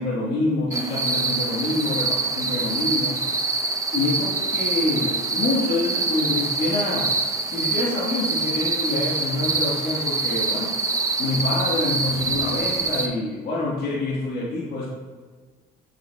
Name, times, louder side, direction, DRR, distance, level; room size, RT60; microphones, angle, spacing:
voice 1, 0.0-3.2 3.9-7.1 7.5-10.9 11.2-14.8, left 2 dB, 70° left, -6 dB, 1.4 m, -26 dB
sound 1, 0.7-13.1, right 3 dB, 20° right, 0.6 m, -25 dB
8.0 x 5.8 x 2.2 m, 1.5 s
cardioid pair, 110°, 17 cm